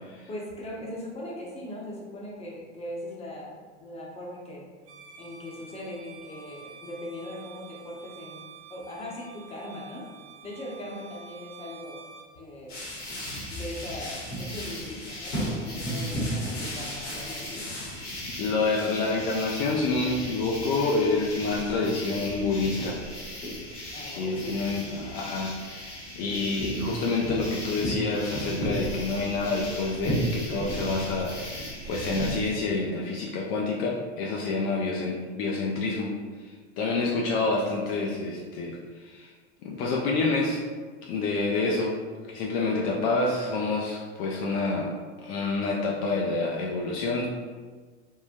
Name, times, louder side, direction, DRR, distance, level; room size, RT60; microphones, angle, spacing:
voice 1, 0.3-4.7 5.2-10.0 10.4-12.1 12.4-12.9 13.5-17.6 23.9-24.6 25.0-25.1 26.3-26.5 30.9-31.2 34.4-34.7, left 1 dB, 15° left, -4 dB, 0.8 m, -40 dB
Bowed string instrument, 4.8-12.3, right 6 dB, 60° right, 0.8 m, -48 dB
sound 1, 12.7-32.5, equal, 70° left, 1.3 m, -35 dB
voice 2, 18.3-23.0 24.1-36.1 36.4-39.3 39.6-40.6 41.0-42.0 42.3-44.9 45.2-47.3, left 3 dB, 55° left, -2 dB, 0.5 m, -28 dB
3.7 x 2.0 x 2.5 m, 1.5 s
hypercardioid pair, 100°, 35 cm